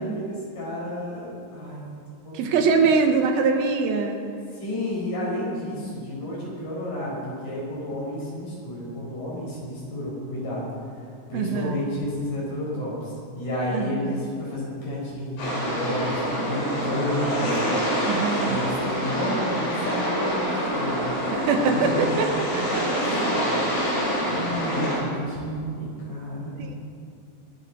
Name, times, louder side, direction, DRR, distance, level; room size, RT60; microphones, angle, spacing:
voice 1, 0.0-1.8 2.2-2.4 2.7-2.8 4.6-10.7 11.3-16.2 16.4-17.8 18.4-21.1 21.6-23.0 23.3-23.6 24.3-26.6, left 1 dB, 40° left, -5 dB, 5.8 m, -31 dB
voice 2, 2.3-4.2 11.3-11.8 13.7-14.2 18.0-18.6 21.3-22.8 26.6-26.7, right 5 dB, 75° right, 4 dB, 2.3 m, -23 dB
sound 1, 15.4-25.0, equal, 60° left, 5.7 m, -26 dB
24.0 x 9.8 x 4.2 m, 2.3 s
omnidirectional pair, 5.4 m